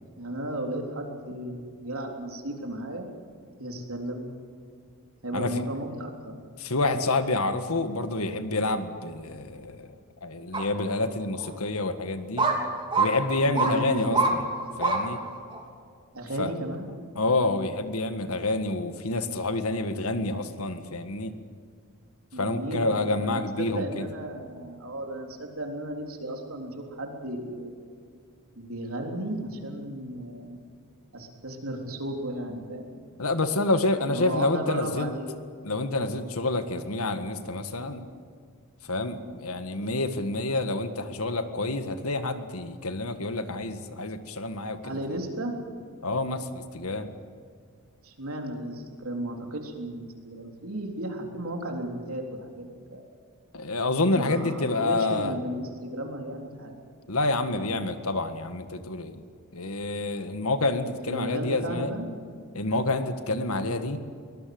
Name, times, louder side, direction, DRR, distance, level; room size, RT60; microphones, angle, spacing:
voice 1, 0.2-3.1 3.6-4.3 5.2-6.3 13.4-14.4 16.1-16.9 22.3-27.7 28.6-30.6 31.1-33.0 34.0-35.4 44.8-45.5 48.0-53.0 54.0-56.8 61.1-62.1, right 1 dB, 75° right, 2 dB, 3.6 m, -34 dB
voice 2, 6.6-9.9 10.2-12.5 13.0-14.4 14.8-15.2 16.4-16.5 17.1-21.3 22.4-24.1 33.2-35.1 35.6-38.0 38.8-45.0 46.0-47.1 53.5-55.3 57.1-59.2 59.5-61.9 62.5-64.0, left 2 dB, 80° left, 9 dB, 1.7 m, -28 dB
sound 1, 10.5-10.6 11.4-11.5 12.4-12.6 12.9-13.1 13.6-13.7 14.1-14.3 14.8-15.0 15.5-15.6, right 3 dB, 25° right, 3.2 m, -23 dB
23.5 x 19.5 x 7.9 m, 2.2 s
head